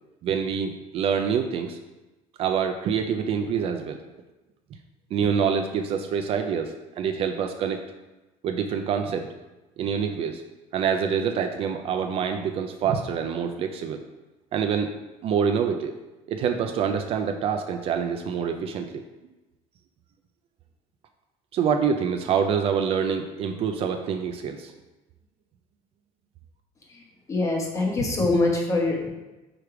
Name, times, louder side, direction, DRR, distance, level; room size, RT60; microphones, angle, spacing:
voice 1, 0.2-1.8 2.4-4.0 5.1-7.8 8.4-9.3 9.8-10.4 10.7-14.0 14.5-14.9 15.2-15.9 16.3-19.0 21.5-24.7, right 7 dB, 40° right, 6 dB, 0.4 m, -26 dB
voice 2, 27.3-29.1, left 2 dB, 20° left, 0 dB, 1.0 m, -23 dB
5.0 x 4.7 x 4.8 m, 1.1 s
cardioid pair, 170°, 14 cm